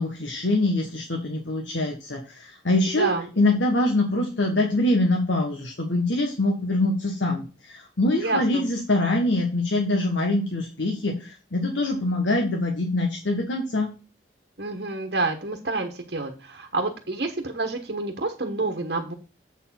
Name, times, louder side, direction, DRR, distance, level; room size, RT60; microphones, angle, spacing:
voice 1, 0.0-13.9, left 2 dB, 85° left, 0 dB, 1.5 m, -24 dB
voice 2, 2.9-3.3 8.2-8.6 14.6-19.1, right 3 dB, 60° right, 3 dB, 1.2 m, -28 dB
8.0 x 4.6 x 6.0 m, 0.34 s
head